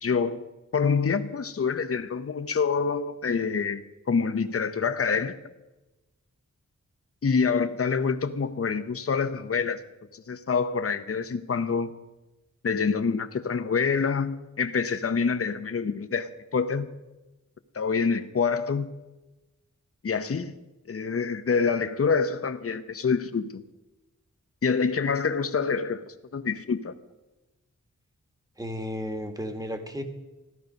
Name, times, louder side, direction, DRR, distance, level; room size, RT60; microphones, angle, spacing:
voice 1, 0.0-0.5 0.7-5.4 7.2-9.8 10.1-11.9 12.6-16.9 17.7-18.9 20.0-20.6 20.9-23.6 24.6-26.9, left 5 dB, 50° left, 0.8 m, -26 dB
voice 2, 28.6-30.0, equal, 10° right, 1.7 m, -33 dB
14.5 x 12.5 x 5.2 m
wide cardioid pair, 85°, 31 cm